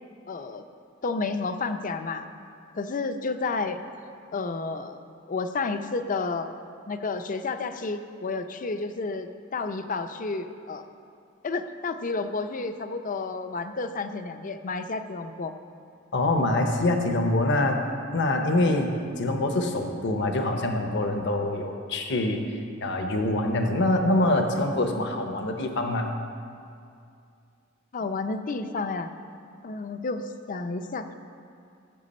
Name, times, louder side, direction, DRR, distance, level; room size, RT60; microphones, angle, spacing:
voice 1, 0.3-0.6 1.0-2.3 2.7-3.8 4.3-6.5 6.9-10.9 11.4-15.5 27.9-29.1 29.6-31.1, left 3 dB, 45° left, 9 dB, 0.5 m, -31 dB
voice 2, 16.1-17.8 18.1-22.4 22.8-26.1, left 1 dB, 65° left, 4 dB, 0.9 m, -25 dB
15.5 x 7.2 x 4.3 m, 2.4 s
head